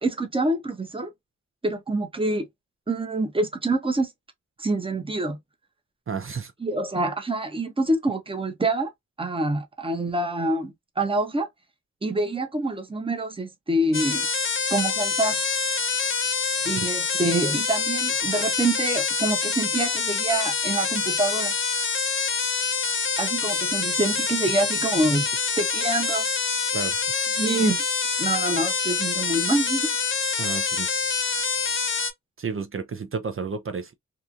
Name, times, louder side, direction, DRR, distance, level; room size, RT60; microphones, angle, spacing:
voice 1, 0.0-1.1 1.6-2.5 2.9-4.1 4.6-5.4 6.6-8.9 9.2-11.5 12.0-14.3 14.7-15.4 16.7-21.5 23.2-25.3 25.6-26.3 27.4-27.8 28.2-29.9, right 2 dB, 15° right, 0.8 m, -26 dB
voice 2, 6.1-6.5 16.6-16.9 26.7-27.0 30.4-31.0 32.4-33.9, right 5 dB, 45° right, 0.5 m, -32 dB
sound 1, 13.9-32.1, left 5 dB, 40° left, 0.7 m, -26 dB
2.9 x 2.4 x 2.4 m
cardioid pair, 70°, 31 cm